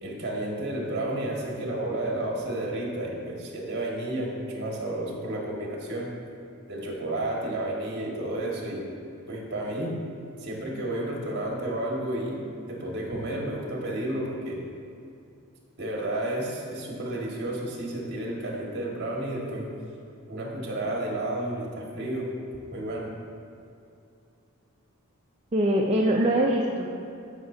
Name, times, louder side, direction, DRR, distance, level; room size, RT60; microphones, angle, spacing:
voice 1, 0.0-6.1 6.7-8.8 9.3-9.9 10.4-12.4 12.7-14.6 15.8-19.7 20.3-22.3 22.7-23.1, right 1 dB, 50° right, -3 dB, 1.7 m, -31 dB
voice 2, 25.5-26.9, right 1 dB, 30° right, -2 dB, 0.5 m, -23 dB
12.5 x 5.8 x 2.7 m, 2.6 s
head